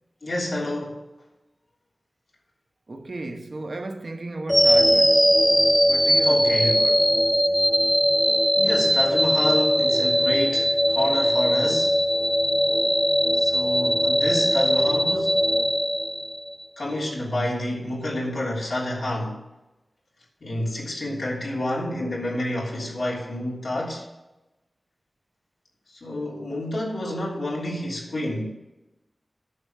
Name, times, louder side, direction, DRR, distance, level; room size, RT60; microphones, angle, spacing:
voice 1, 0.2-1.1 6.2-6.8 8.6-12.0 13.3-15.4 16.8-19.4 20.4-24.1 25.9-28.5, left 1 dB, 85° left, 3.1 m, -29 dB
voice 2, 2.9-5.4 5.9-7.2 7.5-7.7, right 2 dB, 65° right, 1.0 m, -35 dB
sound 1, 4.5-16.6, equal, ahead, 0.6 m, -20 dB
9.8 x 6.5 x 5.9 m
wide cardioid pair, 50°, 0 cm